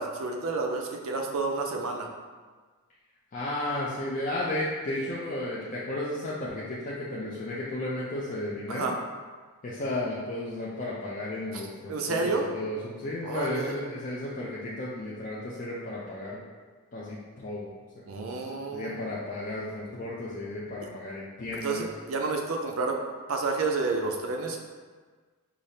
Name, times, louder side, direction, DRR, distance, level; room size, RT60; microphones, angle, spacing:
voice 1, 0.0-2.1 8.7-9.0 11.5-11.6 11.9-12.4 13.2-13.7 18.1-19.0 21.6-23.0 23.3-24.6, right 3 dB, 65° right, 2 dB, 0.4 m, -30 dB
voice 2, 3.3-8.9 9.6-12.2 12.5-16.4 16.9-17.7 18.7-21.8, left 1 dB, 35° left, -7 dB, 0.4 m, -33 dB
4.9 x 2.0 x 2.7 m, 1.4 s
head